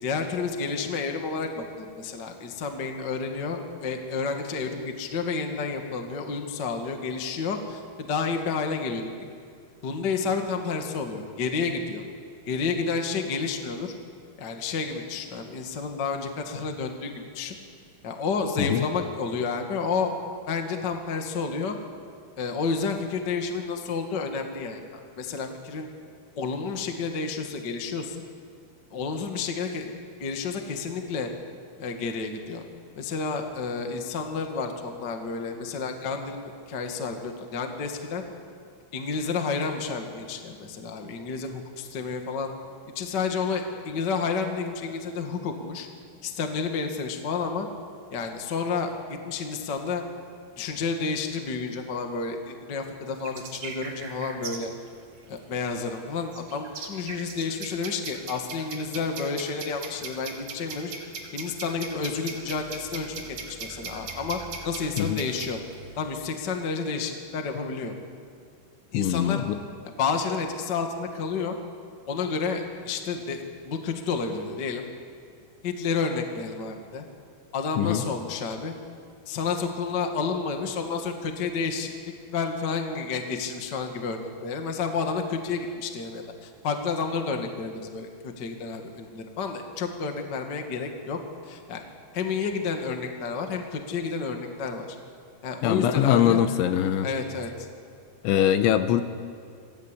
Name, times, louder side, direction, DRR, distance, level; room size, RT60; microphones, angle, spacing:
voice 1, 0.0-9.2 9.8-12.0 12.5-13.9 14.4-17.6 18.0-20.1 20.5-21.8 22.4-25.9 26.4-28.1 28.9-29.9 30.2-31.3 31.8-32.6 33.0-38.2 38.9-42.5 42.9-45.9 46.2-47.7 48.1-48.9 49.2-50.0 50.6-54.7 55.3-60.9 61.3-63.2 63.6-64.4 64.6-65.6 66.0-67.9 68.9-69.4 69.8-71.5 72.1-74.8 75.6-77.0 77.5-78.7 79.2-81.9 82.3-91.2 91.4-91.8 92.1-95.0 95.4-96.4 97.0-97.7, left 5 dB, 50° left, 4 dB, 1.2 m, -30 dB
sound 1, 53.2-66.1, right 4 dB, 50° right, 3.2 m, -40 dB
voice 2, 68.9-69.6 77.8-78.0 95.6-97.1 98.2-99.0, left 10 dB, 80° left, 10 dB, 3.3 m, -22 dB
26.5 x 17.5 x 8.4 m, 2.2 s
omnidirectional pair, 5.4 m